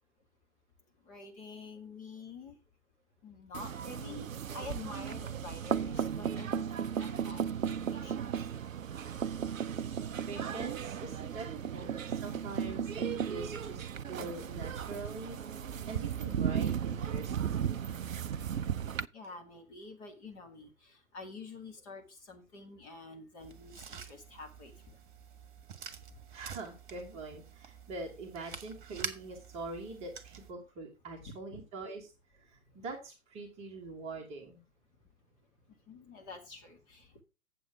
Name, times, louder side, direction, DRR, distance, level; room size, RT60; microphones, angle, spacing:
voice 1, 1.1-2.6 3.2-4.3 4.5-8.4 19.1-24.7 31.2-31.6 35.9-37.2, left 3 dB, 25° left, 3 dB, 2.1 m, -48 dB
sound 1, 3.5-19.1, right 8 dB, 70° right, 0.6 m, -35 dB
voice 2, 10.2-15.4 15.6-17.3 26.3-32.1 32.4-34.6, right 3 dB, 15° right, 0 dB, 1.4 m, -44 dB
sound 2, 23.4-30.5, right 7 dB, 35° right, 1.5 m, -47 dB
7.8 x 7.7 x 4.7 m, 0.31 s
figure-of-eight pair, 125°, 42 cm